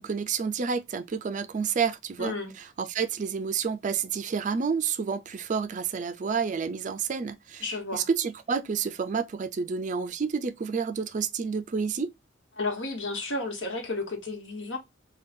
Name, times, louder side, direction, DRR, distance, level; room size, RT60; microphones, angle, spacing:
voice 1, 0.0-2.3 2.8-7.6 7.9-12.1, right 6 dB, 40° right, 0.4 m, -29 dB
voice 2, 2.2-2.5 7.6-8.1 12.6-14.8, left 2 dB, 70° left, 1.2 m, -32 dB
5.3 x 2.3 x 2.6 m
head